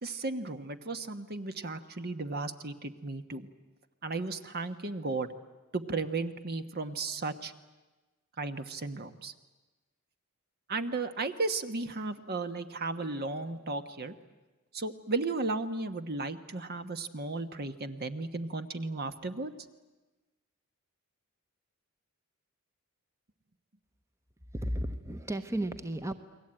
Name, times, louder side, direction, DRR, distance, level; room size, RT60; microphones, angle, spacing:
voice 1, 0.0-3.5 4.0-5.3 5.7-7.5 8.4-9.3 10.7-14.1 14.7-19.5, right 3 dB, 50° right, 9 dB, 1.3 m, -35 dB
voice 2, 24.5-26.1, right 1 dB, 15° right, 9 dB, 1.0 m, -33 dB
29.5 x 22.0 x 8.9 m, 1.2 s
head